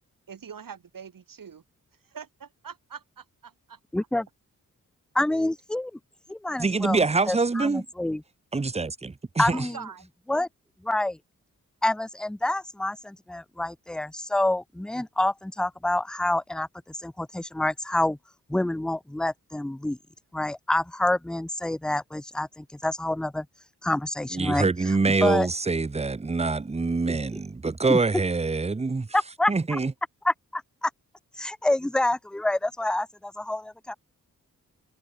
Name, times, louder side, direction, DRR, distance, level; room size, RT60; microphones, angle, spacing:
voice 1, 0.3-1.6 2.0-3.5 9.5-10.0, right 7 dB, 80° right, 4.5 m, -43 dB
voice 2, 3.9-4.2 5.1-5.9 6.3-7.0 7.3-8.2 9.4-9.8 10.3-10.5 10.8-11.2 11.8-18.2 18.5-20.0 20.3-23.5 23.8-24.6 25.2-25.5 27.9-28.0 29.1-29.5 30.2-30.9 31.4-33.9, left 1 dB, 5° left, 0.3 m, -27 dB
voice 3, 6.6-7.9 8.5-9.7 24.3-29.1 29.5-29.9, right 3 dB, 20° right, 0.7 m, -25 dB
wide cardioid pair, 85°, 33 cm